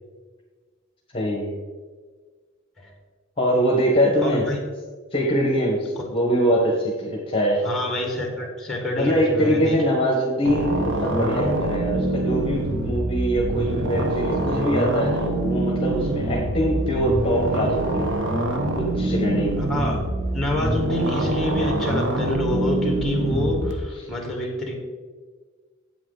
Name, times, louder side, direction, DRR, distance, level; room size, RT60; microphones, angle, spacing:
voice 1, 1.1-1.6 3.4-4.4 5.1-7.6 9.0-18.1 18.8-19.5 24.0-24.1, equal, 25° left, 0 dB, 1.3 m, -23 dB
voice 2, 4.2-4.6 7.6-9.8 19.6-20.0 20.3-24.7, left 1 dB, ahead, 0 dB, 1.9 m, -26 dB
sound 1, 10.4-23.7, right 1 dB, 65° right, 1.0 m, -25 dB
8.5 x 7.7 x 3.9 m, 1.5 s
head